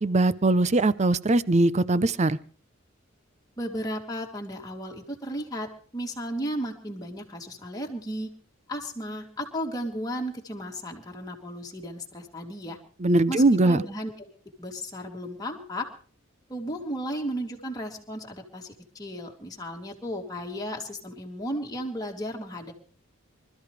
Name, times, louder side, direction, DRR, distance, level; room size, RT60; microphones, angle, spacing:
voice 1, 0.0-2.4 13.0-13.8, right 2 dB, 35° right, 0.6 m, -21 dB
voice 2, 3.6-8.3 8.7-12.8 13.3-14.3 14.6-15.9 16.5-22.7, equal, 20° left, 2.8 m, -34 dB
25.5 x 13.5 x 3.3 m
head